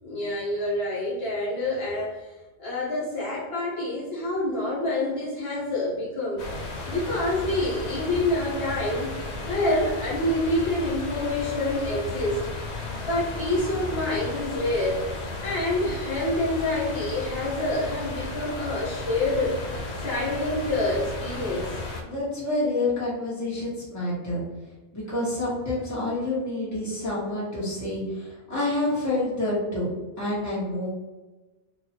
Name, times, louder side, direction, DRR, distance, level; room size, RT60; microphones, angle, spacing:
voice 1, 0.0-2.1 2.6-6.4 6.9-9.1 9.4-12.4 13.0-15.0 15.4-19.5 20.0-21.7, left 1 dB, 65° left, -7 dB, 1.4 m, -27 dB
sound 1, 6.4-22.0, left 3 dB, 80° left, 0.9 m, -34 dB
voice 2, 22.0-24.4 24.9-29.9 30.2-30.9, left 2 dB, 15° left, -8 dB, 1.1 m, -28 dB
2.9 x 2.3 x 4.2 m, 1.2 s
omnidirectional pair, 1.1 m